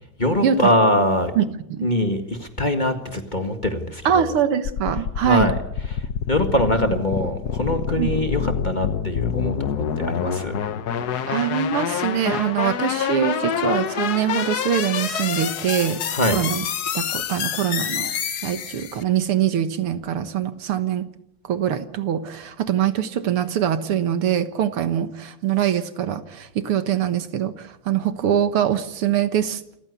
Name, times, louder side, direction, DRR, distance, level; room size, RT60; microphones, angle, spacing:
voice 1, 0.2-1.3 1.8-4.3 5.2-5.6 5.9-10.6 16.1-16.4, left 1 dB, 20° left, 6 dB, 1.8 m, -23 dB
voice 2, 4.1-5.5 8.0-8.1 11.3-16.0 16.3-16.6 16.9-18.1 18.4-21.1 21.4-29.6, right 9 dB, 80° right, 11 dB, 2.2 m, -23 dB
sound 1, 4.6-19.0, left 8 dB, 55° left, 1.3 m, -27 dB
27.5 x 15.0 x 8.3 m, 0.80 s
omnidirectional pair, 2.4 m